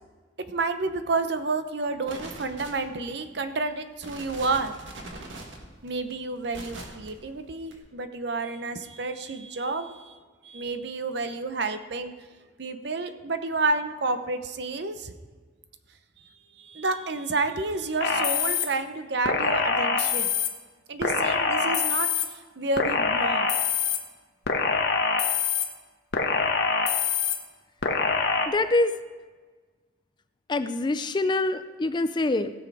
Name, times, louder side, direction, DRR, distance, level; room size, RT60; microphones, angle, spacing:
voice 1, 0.5-4.7 5.8-10.2 10.4-12.1 12.6-15.1 16.2-20.3 20.9-23.5, right 3 dB, 60° right, 9 dB, 0.8 m, -30 dB
sound 1, 2.0-3.1 3.6-3.7 4.0-7.1 7.7-7.8, right 2 dB, 80° right, 1.9 m, -41 dB
sound 2, 18.0-18.7 19.2-20.5 21.0-22.2 22.8-24.0 24.5-25.6 26.1-27.4 27.8-28.5, left 5 dB, 60° left, 1.2 m, -24 dB
voice 2, 28.5-28.9 30.5-32.5, left 2 dB, 25° left, 11 dB, 0.4 m, -25 dB
16.5 x 7.1 x 4.8 m, 1.4 s
head